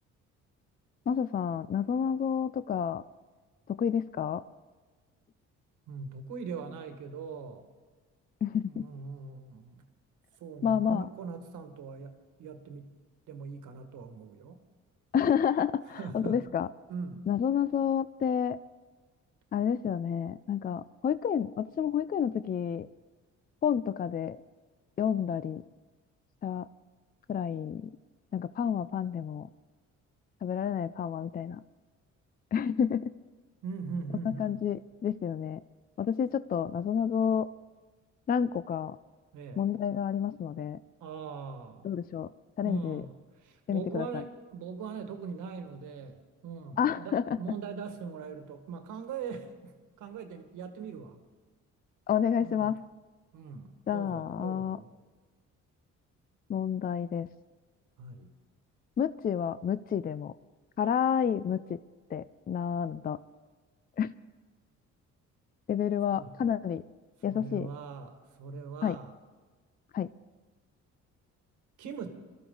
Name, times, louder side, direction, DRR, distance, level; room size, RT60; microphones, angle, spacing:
voice 1, 1.1-3.0 3.7-4.4 8.4-8.9 10.6-11.1 15.1-16.7 17.3-18.6 19.5-22.9 23.6-24.4 25.0-25.6 26.4-26.7 27.3-27.9 28.3-29.5 30.4-31.6 32.5-33.0 34.4-35.6 36.0-37.5 38.3-39.0 39.6-40.8 41.8-42.3 42.6-43.0 43.7-44.2 46.8-47.2 52.1-52.8 53.9-54.8 56.5-57.3 59.0-60.3 60.8-61.8 62.1-63.2 64.0-64.1 65.7-66.8 67.2-67.7 68.8-69.0 69.9-70.1, left 8 dB, 30° left, 15 dB, 0.4 m, -29 dB
voice 2, 5.9-7.7 8.6-9.9 10.4-12.9 13.3-14.6 16.0-16.4 16.9-17.3 33.6-34.7 39.3-39.7 41.0-41.9 42.6-51.2 52.4-52.7 53.3-54.9 58.0-58.3 66.1-66.4 67.3-69.1 71.8-72.1, right 5 dB, 85° right, 6 dB, 1.8 m, -41 dB
22.0 x 13.5 x 3.9 m, 1.3 s
cardioid pair, 90°, 30 cm